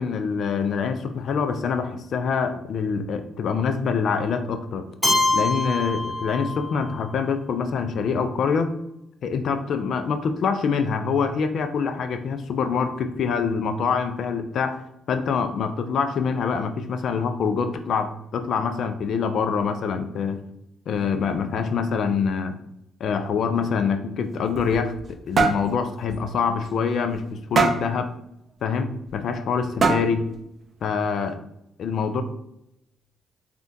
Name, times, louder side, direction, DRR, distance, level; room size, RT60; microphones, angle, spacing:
voice 1, 0.0-4.8 5.3-8.7 9.2-14.8 15.1-20.4 20.9-22.6 23.0-28.1 28.6-30.4 30.8-31.4 31.8-32.2, left 5 dB, 65° left, 8 dB, 0.3 m, -25 dB
Keyboard (musical), 5.0-7.0, left 2 dB, 10° left, 0.9 m, -24 dB
sound 1, 24.3-25.1 25.4-25.7 26.1-26.3 26.6-26.7 27.6-27.9 29.1-29.2 29.8-30.3, right 4 dB, 45° right, 0.4 m, -21 dB
3.6 x 2.2 x 2.6 m, 0.81 s
cardioid pair, 90°, 0 cm